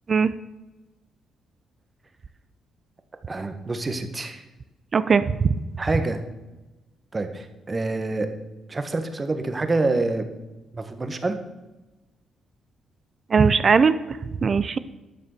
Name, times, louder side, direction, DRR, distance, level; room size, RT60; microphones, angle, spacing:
voice 1, 3.3-4.4 5.8-6.2 7.1-8.3 8.7-10.3 10.7-11.4, right 2 dB, 25° right, 8 dB, 1.5 m, -26 dB
voice 2, 4.9-5.5 13.3-14.8, right 5 dB, 40° right, 14 dB, 0.6 m, -20 dB
12.0 x 6.7 x 6.7 m, 1.1 s
cardioid pair, 90°, 0 cm